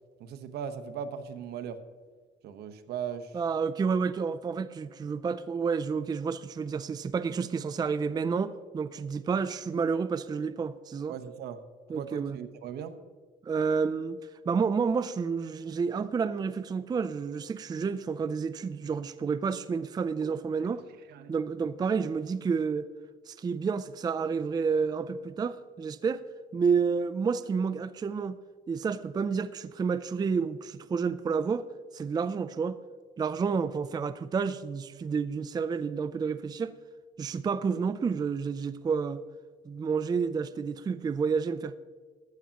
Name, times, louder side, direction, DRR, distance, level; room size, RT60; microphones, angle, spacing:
voice 1, 0.2-1.8 2.4-3.4 11.1-11.6 11.9-12.9 20.2-20.3 21.1-21.3, right 8 dB, 75° right, 9 dB, 1.1 m, -38 dB
voice 2, 3.3-11.2 11.9-12.4 13.4-14.2 14.4-20.8 21.3-22.9 23.3-26.2 26.5-28.4 28.7-31.6 31.9-32.8 33.2-36.7 37.2-39.3 39.7-41.8, right 5 dB, 25° right, 13 dB, 0.4 m, -30 dB
14.5 x 12.0 x 2.9 m, 1.5 s
cardioid pair, 110°, 17 cm